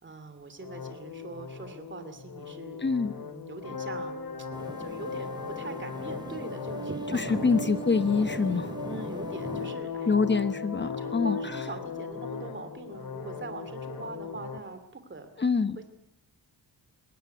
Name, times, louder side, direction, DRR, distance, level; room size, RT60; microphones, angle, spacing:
voice 1, 0.0-2.8 3.2-4.5 4.8-7.4 8.8-10.2 10.8-15.5, right 3 dB, 30° right, 9 dB, 2.6 m, -42 dB
sound 1, 0.6-14.6, left 4 dB, 60° left, 3.4 m, -37 dB
voice 2, 2.8-3.1 7.1-8.7 10.1-11.4 15.4-15.8, left 4 dB, 25° left, 12 dB, 1.1 m, -25 dB
sound 2, 4.5-9.7, right 1 dB, 10° right, 3.3 m, -41 dB
21.5 x 17.5 x 9.3 m, 0.80 s
cardioid pair, 95°, 40 cm